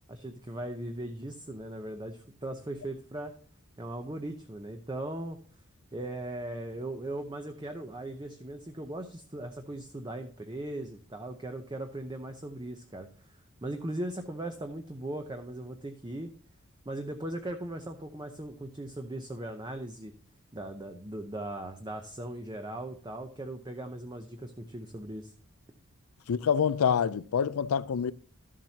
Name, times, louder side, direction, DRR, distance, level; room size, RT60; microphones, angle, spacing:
voice 1, 0.1-3.3 3.8-5.4 5.9-13.1 13.6-16.3 16.9-20.1 20.5-25.3, right 1 dB, 20° right, 0.7 m, -38 dB
voice 2, 26.3-28.1, left 7 dB, 85° left, 0.4 m, -26 dB
13.0 x 7.4 x 2.8 m
head